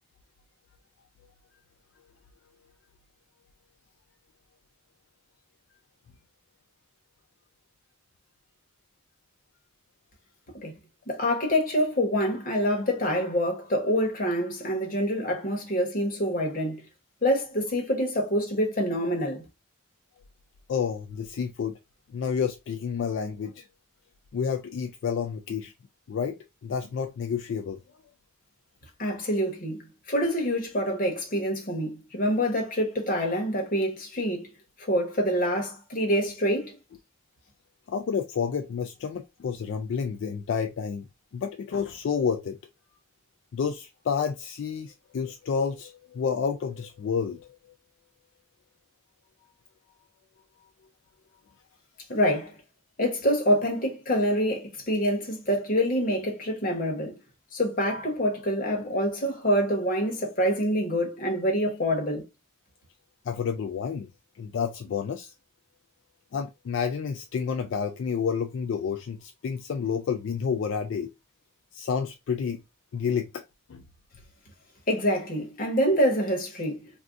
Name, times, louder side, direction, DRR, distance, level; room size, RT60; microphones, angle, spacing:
voice 1, 11.1-16.8 17.2-19.4 29.0-34.5 34.8-36.8 52.1-52.5 53.0-57.1 57.5-62.2 74.9-76.9, equal, 45° left, 1.0 m, -26 dB
voice 2, 20.7-21.8 22.1-23.6 24.3-25.7 26.1-27.8 37.9-41.1 41.3-42.6 43.5-47.5 63.3-64.1 64.4-65.3 66.3-71.1 71.7-72.6 72.9-73.4 73.7-73.8, left 6 dB, 70° left, 0.3 m, -30 dB
2.6 x 2.3 x 3.4 m
head